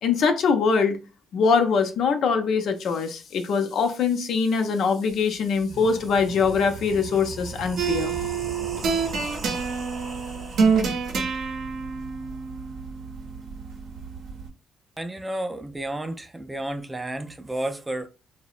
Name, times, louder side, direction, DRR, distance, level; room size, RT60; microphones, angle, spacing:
voice 1, 0.0-1.0 1.3-8.1, left 5 dB, 70° left, 0.5 m, -23 dB
sound 1, 5.1-5.2 5.5-10.8, right 4 dB, 45° right, 0.8 m, -38 dB
sound 2, 7.8-14.5, right 5 dB, 70° right, 0.6 m, -27 dB
voice 2, 15.0-18.1, right 1 dB, 15° right, 0.4 m, -31 dB
2.8 x 2.1 x 2.4 m
cardioid pair, 90°, 0 cm